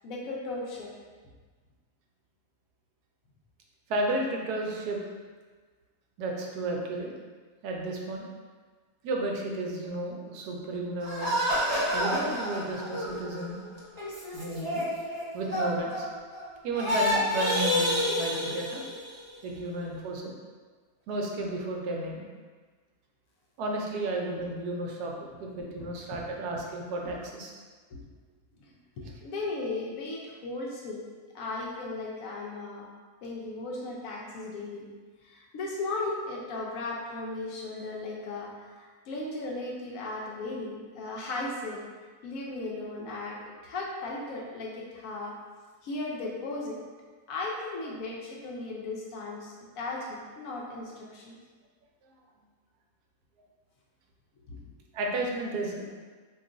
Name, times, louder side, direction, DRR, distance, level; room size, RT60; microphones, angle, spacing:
voice 1, 0.0-0.9 25.8-25.9 27.9-28.0 28.6-31.0 31.3-32.9 33.2-34.9 35.2-41.8 42.2-45.4 45.8-46.8 47.3-51.3 54.5-54.6, left 2 dB, 70° left, -3 dB, 1.0 m, -36 dB
voice 2, 3.9-5.0 6.2-7.1 7.6-8.3 9.0-13.6 14.3-14.9 15.3-16.1 16.6-18.8 19.4-20.3 21.1-22.2 23.6-25.1 25.4-27.5 54.9-55.9, right 2 dB, 90° right, 0 dB, 1.1 m, -33 dB
sound 1, 11.0-16.4 16.7-19.2, left 1 dB, 30° right, 0.4 m, -29 dB
2.9 x 2.3 x 3.7 m, 1.4 s
omnidirectional pair, 1.6 m